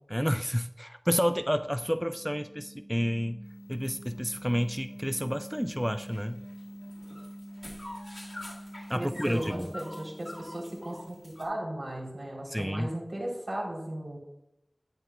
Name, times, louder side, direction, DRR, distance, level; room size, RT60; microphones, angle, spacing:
voice 1, 0.1-6.5 8.9-9.7 12.5-12.9, equal, ahead, 9 dB, 0.3 m, -30 dB
sound 1, 1.4-11.6, equal, 50° right, 2.8 m, -47 dB
sound 2, 3.5-11.4, left 1 dB, 55° left, 1.7 m, -48 dB
voice 2, 8.9-14.2, right 1 dB, 70° right, -2 dB, 3.1 m, -36 dB
11.0 x 9.3 x 2.2 m, 0.88 s
wide cardioid pair, 45°, 0 cm